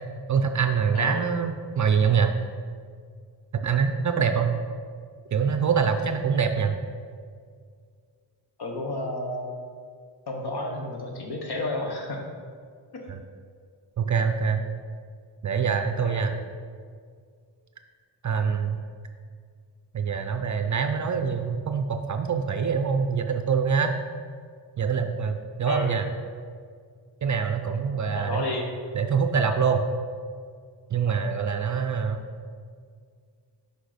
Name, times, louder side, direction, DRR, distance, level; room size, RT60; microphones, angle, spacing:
voice 1, 0.3-2.3 3.5-4.6 5.3-6.8 13.1-13.2 14.0-14.6 15.4-16.3 18.2-18.8 19.9-23.9 24.8-26.1 27.2-28.4 28.9-29.8 30.9-32.2, right 6 dB, 40° right, 6 dB, 0.5 m, -24 dB
voice 2, 8.6-9.7 10.3-12.2 12.9-13.1 16.0-16.3 25.7-25.9 28.1-28.6, left 2 dB, 55° left, 1 dB, 1.3 m, -31 dB
6.2 x 5.3 x 5.0 m, 2.1 s
wide cardioid pair, 115°, 46 cm